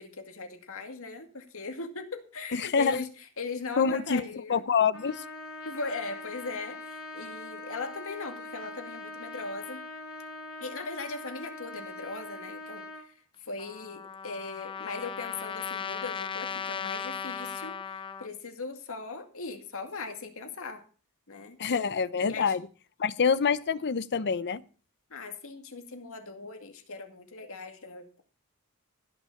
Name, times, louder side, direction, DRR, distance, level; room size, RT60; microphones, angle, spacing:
voice 1, 0.0-4.6 5.6-9.8 10.6-20.9 21.3-21.9 22.2-22.6 25.1-28.2, left 4 dB, 65° left, 2.2 m, -39 dB
voice 2, 2.5-3.0 3.8-5.2 21.6-22.6 23.0-24.6, left 6 dB, 50° left, 0.7 m, -26 dB
Trumpet, 4.9-13.1, left 2 dB, 85° left, 2.1 m, -42 dB
Trumpet 2, 13.6-18.3, left 6 dB, 20° left, 0.9 m, -37 dB
16.0 x 6.1 x 7.1 m
head